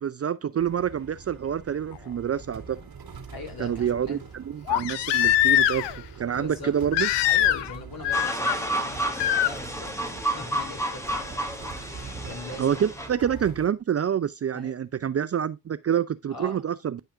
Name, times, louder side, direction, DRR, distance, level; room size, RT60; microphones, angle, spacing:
voice 1, 0.0-2.8 3.6-5.9 6.2-7.1 12.6-17.0, right 8 dB, 35° right, 0.5 m, -27 dB
sound 1, 0.6-13.7, right 5 dB, 55° right, 2.4 m, -43 dB
Crying sobbing, 2.0-2.1 4.7-6.0 6.9-7.8 8.0-8.6 9.2-9.5 11.1-11.2, left 12 dB, 75° left, 0.6 m, -22 dB
voice 2, 3.3-4.2 6.3-6.8 7.2-11.4 11.9-12.9 14.5-14.8 16.3-16.6, left 3 dB, 55° left, 3.3 m, -41 dB
sound 2, 8.1-13.1, right 1 dB, 5° left, 1.7 m, -31 dB
10.0 x 5.6 x 2.5 m
hypercardioid pair, 45°, 43 cm